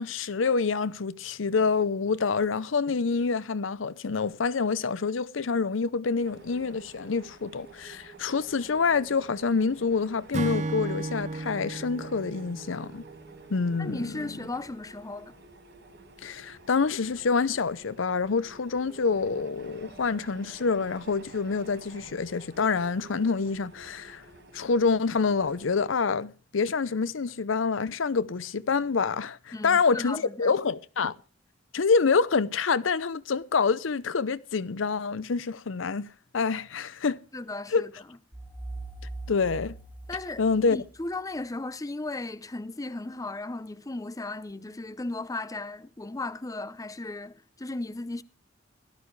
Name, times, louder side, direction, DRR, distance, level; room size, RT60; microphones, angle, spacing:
voice 1, 0.0-13.0 13.5-14.1 16.2-24.2 24.5-31.1 31.7-36.1 36.3-37.2 37.7-37.8 39.3-39.7 40.4-40.8, left 5 dB, 75° left, 0.6 m, -27 dB
sound 1, 6.2-25.9, right 3 dB, 65° right, 4.4 m, -50 dB
Acoustic guitar / Strum, 10.3-13.8, right 2 dB, 40° right, 0.7 m, -34 dB
voice 2, 13.8-15.3 29.5-30.5 37.3-37.9 40.1-40.4 40.7-48.2, left 2 dB, 20° left, 0.6 m, -36 dB
sound 2, 38.3-41.2, right 2 dB, 10° right, 0.9 m, -41 dB
17.5 x 12.5 x 3.2 m
head